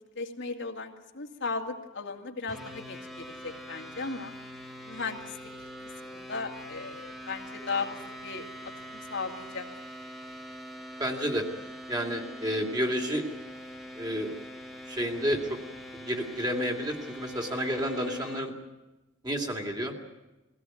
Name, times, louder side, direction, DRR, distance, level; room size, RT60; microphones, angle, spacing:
voice 1, 0.2-4.3 4.8-5.3 6.0-8.5 9.1-9.7, left 4 dB, 60° left, 2 dB, 2.4 m, -36 dB
sound 1, 2.5-18.5, equal, ahead, 1.8 m, -44 dB
voice 2, 11.0-11.5 11.9-13.2 14.0-14.3 14.9-15.6 15.9-18.5 19.2-19.9, equal, 20° right, 2 dB, 2.9 m, -30 dB
22.5 x 17.0 x 9.3 m, 1.1 s
head